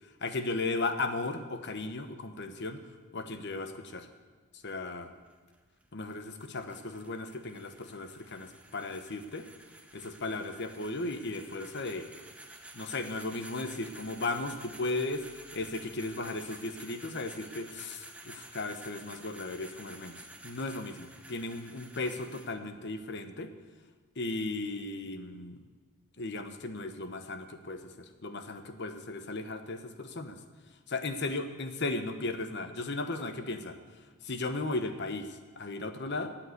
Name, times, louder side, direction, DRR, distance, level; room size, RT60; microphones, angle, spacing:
voice 1, 0.2-2.8 3.1-4.1 4.6-5.1 5.9-9.4 9.9-12.1 12.7-23.5 24.2-25.6 26.2-30.4 30.9-33.7 34.2-36.3, left 2 dB, 55° left, 8 dB, 1.1 m, -36 dB
sound 1, 5.0-22.5, right 2 dB, 5° right, 0.9 m, -51 dB
13.5 x 9.0 x 8.0 m, 1.4 s
head